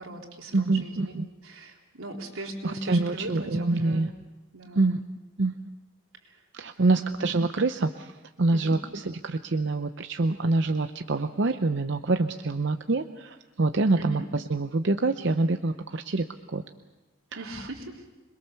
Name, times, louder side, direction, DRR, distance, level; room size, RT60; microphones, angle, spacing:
voice 1, 0.0-1.1 1.4-4.1 4.5-5.0 6.2-6.4 6.7-7.2 8.5-8.8 13.9-14.3 17.4-18.1, right 1 dB, 85° right, 0 dB, 3.8 m, -39 dB
voice 2, 0.5-1.3 2.6-4.1 4.7-5.0 5.4-5.5 6.5-16.6, right 3 dB, 55° right, 8 dB, 0.7 m, -26 dB
26.5 x 21.5 x 6.9 m, 1.1 s
head